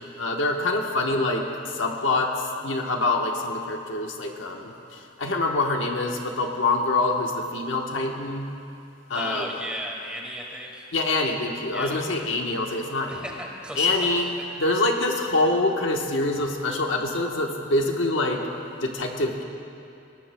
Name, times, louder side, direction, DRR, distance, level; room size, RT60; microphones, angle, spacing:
voice 1, 0.0-8.5 9.1-9.5 10.9-13.2 13.8-14.3 14.6-18.4 18.8-19.4, left 2 dB, 75° left, 1 dB, 1.2 m, -25 dB
voice 2, 9.1-10.9 11.7-12.0 13.1-14.1, equal, 5° right, -2 dB, 1.9 m, -35 dB
21.5 x 19.0 x 2.2 m, 2.6 s
head